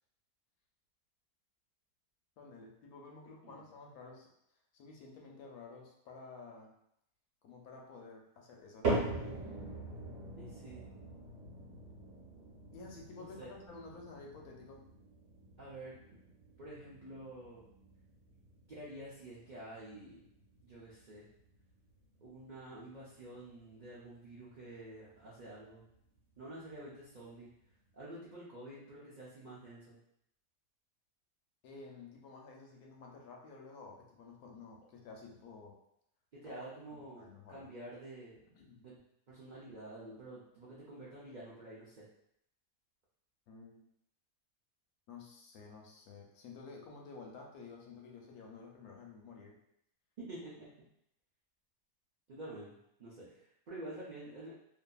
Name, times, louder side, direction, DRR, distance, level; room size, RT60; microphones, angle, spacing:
voice 1, 2.4-4.3 4.7-6.7 7.4-9.5 12.7-14.8 31.6-35.8 36.4-36.5 36.9-37.7 38.5-38.8 43.5-43.8 45.1-49.5, left 4 dB, 80° left, 0 dB, 1.1 m, -52 dB
sound 1, 8.8-25.2 25.5-26.0 26.6-26.7 27.5-27.6, right 2 dB, 45° right, 1.0 m, -43 dB
voice 2, 10.4-10.9 13.2-13.5 15.6-16.2 16.6-17.6 18.7-20.2 20.6-21.3 22.2-25.8 26.4-27.5 27.9-30.0 36.3-38.4 38.8-39.0 39.3-42.1 50.2-50.7 52.3-54.5, right 1 dB, 75° right, -8 dB, 0.4 m, -49 dB
2.6 x 2.5 x 2.3 m, 0.75 s
omnidirectional pair, 1.6 m